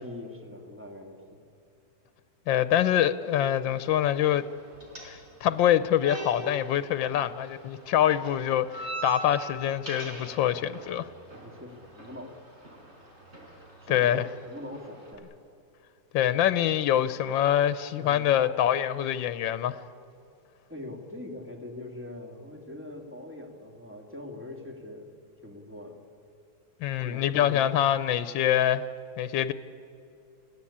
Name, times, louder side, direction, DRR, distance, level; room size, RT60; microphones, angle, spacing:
voice 1, 0.0-1.4 11.3-12.3 13.8-15.3 18.0-18.3 20.7-25.1 25.4-26.0 27.0-27.6, left 1 dB, 5° right, 1 dB, 2.5 m, -42 dB
voice 2, 2.5-4.4 5.0-11.1 13.9-14.2 16.1-19.8 26.8-28.8 29.2-29.5, left 11 dB, 85° left, 13 dB, 1.5 m, -25 dB
sound 1, 3.7-15.1, right 2 dB, 35° right, 5.4 m, -43 dB
29.5 x 17.0 x 8.6 m, 2.7 s
omnidirectional pair, 2.0 m